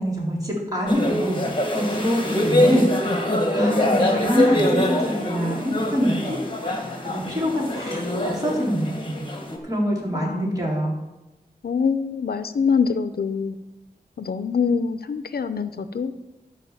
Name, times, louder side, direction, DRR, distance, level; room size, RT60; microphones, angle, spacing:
voice 1, 0.0-1.4 1.7-6.4 7.0-8.0 8.3-9.2 9.6-11.0, equal, 25° right, -4 dB, 3.7 m, -25 dB
sound 1, 0.9-9.6, left 1 dB, 30° left, 1.8 m, -24 dB
voice 2, 10.2-10.6 11.6-13.6 14.2-16.1, left 5 dB, 85° left, 11 dB, 0.6 m, -24 dB
12.5 x 4.7 x 7.2 m, 1.0 s
wide cardioid pair, 70°, 16 cm